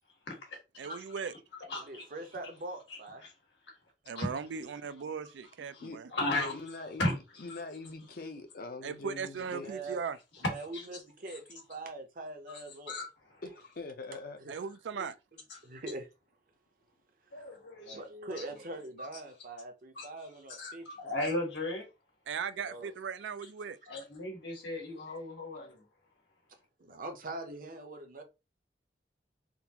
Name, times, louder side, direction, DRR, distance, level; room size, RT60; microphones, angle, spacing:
voice 1, 0.3-1.0 1.7-2.1 2.9-3.3 4.1-4.3 5.7-7.6 10.4-11.0 11.3-11.4 12.5-12.6 12.9-13.4 15.5-15.6 17.3-18.0 18.3-18.4 19.0-19.1 19.9-20.1 20.5-21.9 23.9-25.8, left 2 dB, 85° left, 1.5 m, -36 dB
voice 2, 0.8-1.3 4.1-6.1 8.8-10.2 14.5-15.1 22.3-23.8, right 6 dB, 90° right, 0.4 m, -38 dB
voice 3, 1.9-3.2 9.6-10.0 10.5-12.9 14.4-14.5 14.9-15.1 15.6-16.1 17.9-21.1 22.6-22.9 26.8-28.2, right 2 dB, 50° right, 0.7 m, -43 dB
voice 4, 6.3-7.1 7.4-9.7 13.4-14.7, left 2 dB, 55° left, 0.6 m, -43 dB
3.7 x 2.4 x 2.8 m
head